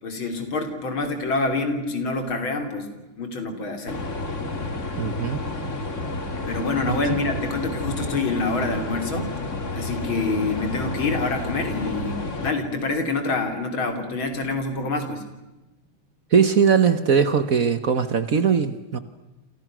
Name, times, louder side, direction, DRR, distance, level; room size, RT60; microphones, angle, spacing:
voice 1, 0.0-4.1 6.5-9.3 9.7-15.3, left 3 dB, 75° left, 6 dB, 4.0 m, -27 dB
sound 1, 3.9-12.5, left 2 dB, 35° left, 2.6 m, -30 dB
voice 2, 5.0-5.4 6.9-7.0 16.3-19.0, right 6 dB, 50° right, 12 dB, 1.4 m, -20 dB
29.0 x 27.5 x 6.2 m, 1.0 s
omnidirectional pair, 2.2 m